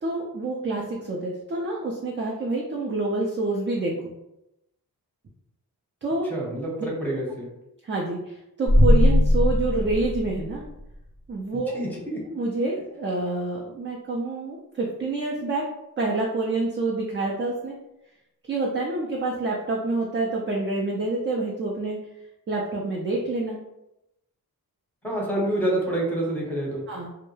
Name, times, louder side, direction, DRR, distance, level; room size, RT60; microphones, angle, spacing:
voice 1, 0.0-4.1 6.0-6.3 7.8-10.6 11.3-11.8 12.3-15.6 16.0-17.7 18.5-22.0 22.5-23.6 26.9-27.1, right 2 dB, 35° right, -2 dB, 0.4 m, -27 dB
voice 2, 6.3-7.5 11.7-12.2 25.0-26.8, right 1 dB, 5° left, -3 dB, 0.8 m, -27 dB
sound 1, 8.7-10.9, left 1 dB, 80° right, 0.9 m, -19 dB
2.2 x 2.0 x 3.0 m, 0.88 s
wide cardioid pair, 100°, 36 cm